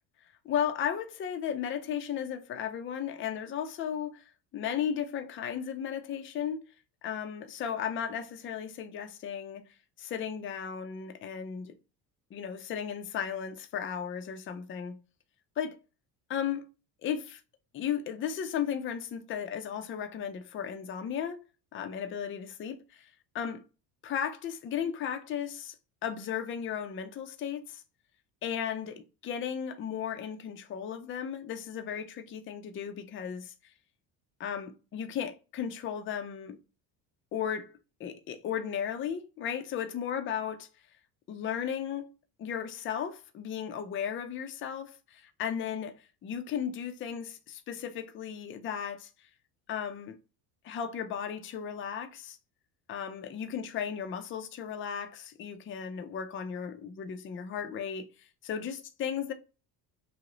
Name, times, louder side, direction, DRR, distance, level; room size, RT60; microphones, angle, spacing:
voice 1, 0.4-6.6 7.0-9.6 10.0-11.8 12.3-15.0 15.6-15.8 16.3-16.7 17.0-17.4 17.7-21.4 21.7-23.1 23.3-23.6 24.0-25.8 26.0-27.8 28.4-33.7 34.4-36.6 37.3-37.7 38.0-40.5 41.3-42.1 42.4-49.1 49.7-50.2 50.6-52.4 52.9-59.3, left 8 dB, 30° left, 0.4 m, -35 dB
2.6 x 2.0 x 2.9 m
supercardioid pair, 75°, 47 cm